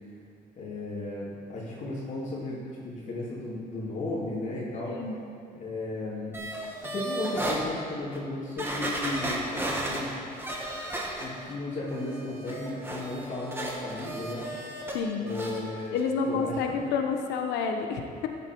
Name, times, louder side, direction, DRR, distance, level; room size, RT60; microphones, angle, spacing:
voice 1, 0.6-5.0 5.5-6.3 6.8-10.2 11.2-14.5 15.2-16.0 16.2-16.6, left 2 dB, 45° left, -9 dB, 2.8 m, -35 dB
sound 1, 6.3-7.6 8.1-8.2 8.6-11.5 11.9-15.0 15.3-15.6 16.0-16.1, right 1 dB, 15° right, 1.9 m, -34 dB
voice 2, 14.9-15.3 15.9-18.3, left 5 dB, 90° left, 4 dB, 1.0 m, -29 dB
14.5 x 8.5 x 4.7 m, 2.4 s
cardioid pair, 110°, 17 cm